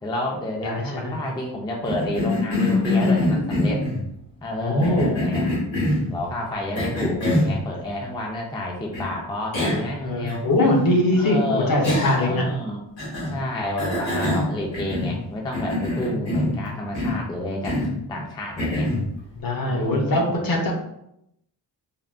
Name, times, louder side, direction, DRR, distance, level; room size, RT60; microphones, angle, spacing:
voice 1, 0.0-3.9 4.4-5.5 6.1-10.5 11.2-12.8 13.3-18.9 19.7-20.5, left 1 dB, 10° left, 0 dB, 0.3 m, -30 dB
voice 2, 0.6-1.1 4.6-5.1 10.0-12.5 16.1-16.3 16.6-16.7 19.4-20.7, left 1 dB, 55° left, 1 dB, 0.6 m, -22 dB
Cough, 1.8-4.0 4.8-6.1 6.7-7.5 8.9-9.0 9.5-9.9 10.3-10.4 11.8-12.4 13.0-13.4 13.8-15.2 15.5-16.6 16.9-17.2 17.6-18.0 18.6-19.1, left 2 dB, 85° left, 1.2 m, -24 dB
3.5 x 2.1 x 2.3 m, 0.78 s
wide cardioid pair, 125°, 44 cm